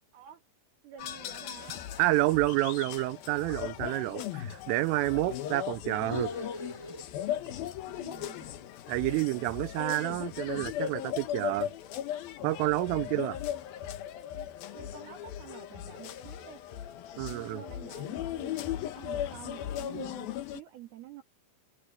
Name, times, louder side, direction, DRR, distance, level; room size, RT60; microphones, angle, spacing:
voice 1, 0.8-1.8 7.9-9.5 13.0-13.3 14.3-16.6 17.2-21.2, right 11 dB, 65° right, 2.9 m, -49 dB
sound 1, 1.0-20.6, left 11 dB, 70° left, 2.4 m, -38 dB
voice 2, 2.0-6.3 8.9-11.7 12.4-13.4 17.2-17.6, right 19 dB, 85° right, 3.3 m, -29 dB
sound 2, 5.9-7.6 7.9-10.2, left 1 dB, 5° left, 2.9 m, -43 dB
omnidirectional pair, 5.8 m